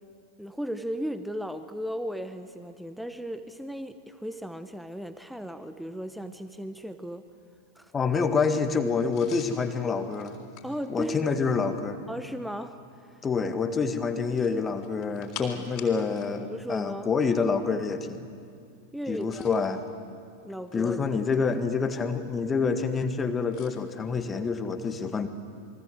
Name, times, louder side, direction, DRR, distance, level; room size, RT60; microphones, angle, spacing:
voice 1, 0.4-7.2 7.7-7.9 10.6-11.2 12.1-13.2 16.4-17.1 18.9-19.5 20.4-21.4, equal, ahead, 10 dB, 1.0 m, -36 dB
voice 2, 7.9-10.4 10.9-12.0 13.2-18.3 19.1-19.8 20.7-25.3, left 5 dB, 20° left, 8 dB, 1.9 m, -27 dB
sound 1, 9.1-11.8 14.2-16.3 16.6-16.8 19.0-19.7 20.5-21.6 23.5-23.8, left 8 dB, 40° left, 3.7 m, -47 dB
28.0 x 23.0 x 7.9 m, 2.3 s
figure-of-eight pair, 90°, 0 cm